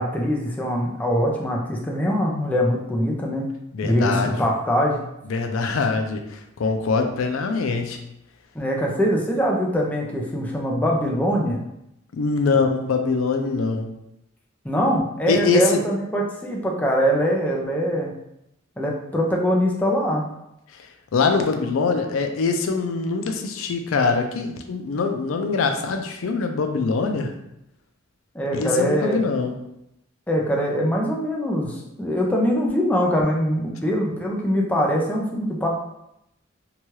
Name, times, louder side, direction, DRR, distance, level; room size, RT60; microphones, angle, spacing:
voice 1, 0.0-3.5 3.8-5.0 8.5-11.6 14.6-18.1 18.8-20.3 28.3-29.3 30.3-35.7, equal, 10° left, -2 dB, 0.4 m, -23 dB
voice 2, 3.7-4.3 5.3-8.0 12.1-13.9 15.3-15.8 20.7-27.3 28.5-29.6, left 4 dB, 90° left, 5 dB, 0.4 m, -23 dB
2.8 x 2.3 x 3.0 m, 0.83 s
head